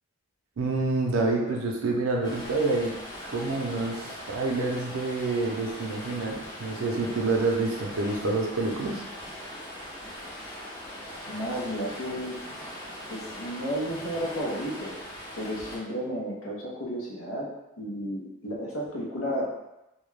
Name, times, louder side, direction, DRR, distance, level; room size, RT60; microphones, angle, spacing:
voice 1, 0.6-2.9 3.3-9.0, right 3 dB, 85° right, 0 dB, 0.5 m, -27 dB
Stream, 2.2-15.8, equal, 20° left, 0.5 m, -40 dB
voice 2, 11.2-12.4 13.1-14.9 15.3-17.5 17.8-19.5, equal, 85° left, -3 dB, 0.7 m, -32 dB
2.3 x 2.1 x 3.2 m, 0.94 s
head